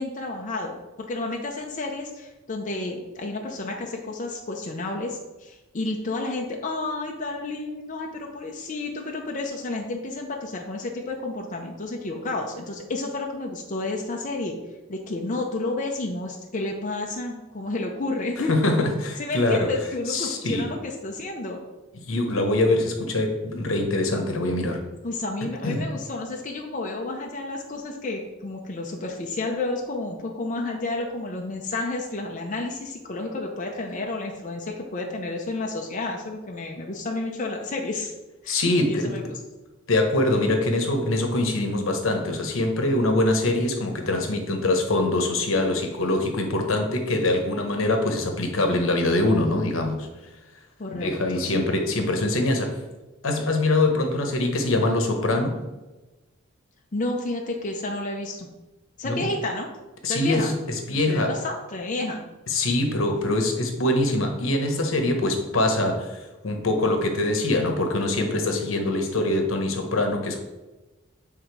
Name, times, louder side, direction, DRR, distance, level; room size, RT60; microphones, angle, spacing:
voice 1, 0.0-14.6 14.9-18.5 19.2-21.6 25.0-38.1 38.4-39.4 50.8-51.6 56.9-58.5 59.0-59.7 60.1-60.5 60.9-62.2, left 2 dB, 40° left, 1 dB, 0.6 m, -31 dB
voice 2, 18.5-19.7 20.1-20.7 22.1-24.8 25.6-25.8 38.5-39.1 39.9-50.1 50.9-52.8 53.2-55.6 59.0-59.3 60.0-61.4 62.5-70.4, left 2 dB, 75° left, 4 dB, 1.0 m, -23 dB
7.1 x 3.7 x 4.6 m, 1.1 s
head